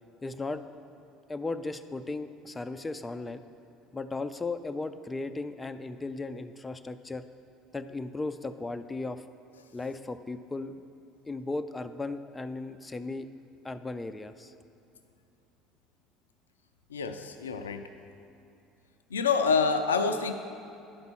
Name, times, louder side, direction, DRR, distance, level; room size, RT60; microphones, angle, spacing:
voice 1, 0.2-0.6 1.3-3.4 3.9-7.2 7.7-9.2 9.7-10.8 11.3-13.3 13.6-14.5, left 3 dB, 15° left, 9 dB, 0.4 m, -36 dB
voice 2, 16.9-17.9 19.1-20.3, left 5 dB, 85° left, 7 dB, 0.4 m, -27 dB
10.5 x 5.3 x 6.2 m, 2.7 s
hypercardioid pair, 65°, 0 cm